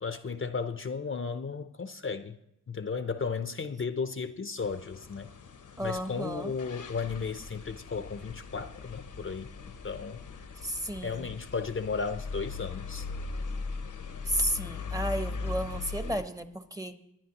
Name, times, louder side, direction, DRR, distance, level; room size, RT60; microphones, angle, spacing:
voice 1, 0.0-2.4 2.7-5.3 5.8-9.5 9.8-10.2 11.0-13.0, left 5 dB, 40° left, 0.5 m, -34 dB
sound 1, 4.6-16.2, left 4 dB, 70° left, 0.8 m, -39 dB
voice 2, 5.8-6.5 10.6-11.3 14.2-17.0, equal, 10° right, 0.8 m, -33 dB
22.0 x 10.0 x 2.9 m
wide cardioid pair, 75°, 32 cm